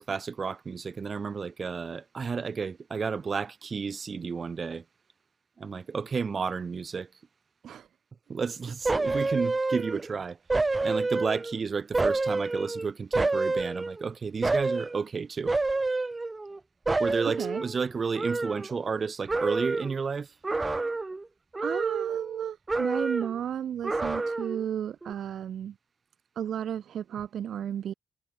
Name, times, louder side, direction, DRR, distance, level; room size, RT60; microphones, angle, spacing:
voice 1, 0.0-4.8 5.6-7.1 8.3-10.4 10.8-15.5 17.0-20.3, right 5 dB, 40° right, 4.4 m, -32 dB
sound 1, 8.9-10.1 10.5-11.6 11.9-14.1 14.4-15.0 15.5-16.6 16.9-19.0 19.3-20.0 20.4-21.2 21.5-22.4 22.7-23.4 23.8-24.6 25.0-25.1, right 3 dB, 20° right, 2.8 m, -29 dB
voice 2, 17.2-17.6 21.6-25.7 26.4-27.9, right 9 dB, 65° right, 0.8 m, -33 dB
cardioid pair, 90°, 0 cm